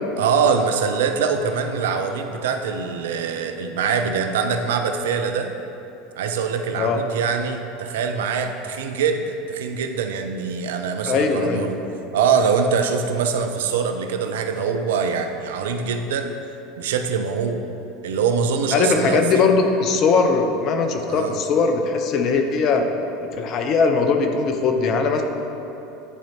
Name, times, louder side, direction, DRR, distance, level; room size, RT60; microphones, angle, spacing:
voice 1, 0.2-5.5 6.2-11.8 12.1-16.3 16.8-17.6 18.0-19.4 21.1-21.4, right 6 dB, 70° right, 6 dB, 0.4 m, -23 dB
voice 2, 11.1-11.6 18.7-22.9 23.2-25.2, left 4 dB, 45° left, 5 dB, 0.6 m, -20 dB
10.0 x 4.3 x 2.9 m, 2.9 s
figure-of-eight pair, 75°, 0 cm